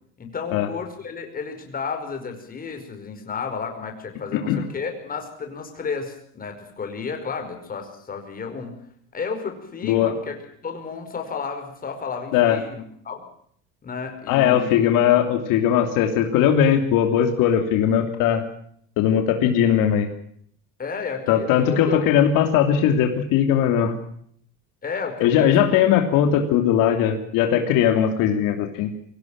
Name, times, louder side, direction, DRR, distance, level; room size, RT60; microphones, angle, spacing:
voice 1, 0.2-8.8 9.1-10.3 10.6-13.2 13.8-14.8 20.8-22.0 24.8-25.7, left 5 dB, 25° left, 5 dB, 5.2 m, -32 dB
voice 2, 14.3-18.4 19.0-20.1 21.3-23.9 25.2-28.9, left 9 dB, 70° left, 5 dB, 3.0 m, -19 dB
23.5 x 17.5 x 7.3 m, 0.64 s
cardioid pair, 140°, 33 cm